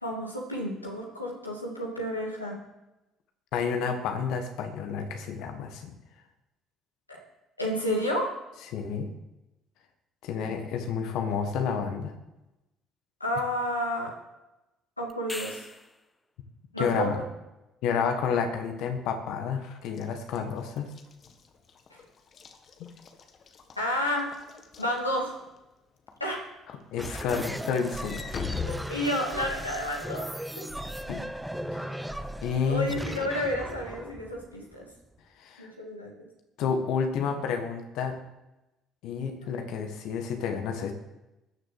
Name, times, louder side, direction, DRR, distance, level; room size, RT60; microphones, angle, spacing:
voice 1, 0.0-2.6 7.6-8.3 13.2-14.1 15.0-15.6 16.7-17.1 21.9-22.0 23.8-24.3 24.8-25.4 26.2-26.5 28.6-30.7 32.6-34.9 35.6-36.1, equal, 90° left, -2 dB, 2.3 m, -31 dB
voice 2, 3.5-5.9 8.7-9.1 10.2-12.2 16.8-17.2 17.8-20.9 22.8-22.9 26.9-28.2 31.1-31.2 31.7-32.0 32.4-32.9 35.4-35.7 36.6-38.1 39.0-40.9, left 6 dB, 60° left, 5 dB, 1.5 m, -30 dB
sound 1, 15.1-16.1 20.7-20.8, left 2 dB, 15° left, 1.2 m, -40 dB
Walk footsteps / Slam, 19.8-25.6 26.1-26.4 26.7-29.7, left 6 dB, 45° left, 1.5 m, -41 dB
sound 2, 27.0-35.2, right 1 dB, 5° right, 0.9 m, -37 dB
13.5 x 6.7 x 7.8 m, 0.99 s
figure-of-eight pair, 50°, 0 cm